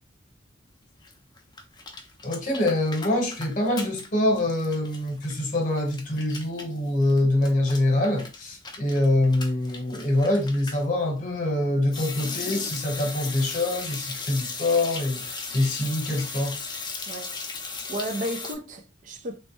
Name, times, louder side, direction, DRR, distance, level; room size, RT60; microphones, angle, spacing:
sound 1, 1.0-1.1 1.4-4.1 4.4-10.8 11.9-18.5, left 4 dB, 25° left, 0.5 m, -36 dB
voice 1, 2.2-16.6, left 1 dB, 45° left, 1.0 m, -25 dB
voice 2, 17.1-17.4 17.9-19.4, equal, 45° right, 0.4 m, -33 dB
3.2 x 2.1 x 3.0 m
head